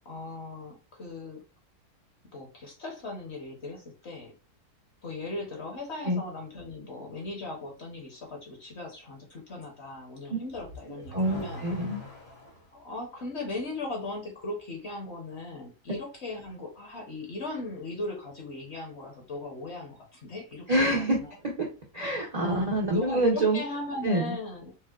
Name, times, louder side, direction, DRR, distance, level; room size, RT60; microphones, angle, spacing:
voice 1, 0.0-1.4 2.3-4.3 5.0-11.6 12.7-20.7 20.9-21.3 22.9-24.7, left 2 dB, 50° left, 0 dB, 0.9 m, -38 dB
Car / Accelerating revving vroom, 10.5-12.7, left 1 dB, 85° left, 2.3 m, -43 dB
voice 2, 11.1-12.0 20.7-21.2 21.4-21.7 21.9-23.6 24.0-24.3, right 1 dB, 55° right, -2 dB, 0.4 m, -26 dB
4.4 x 2.0 x 2.3 m, 0.32 s
omnidirectional pair, 1.7 m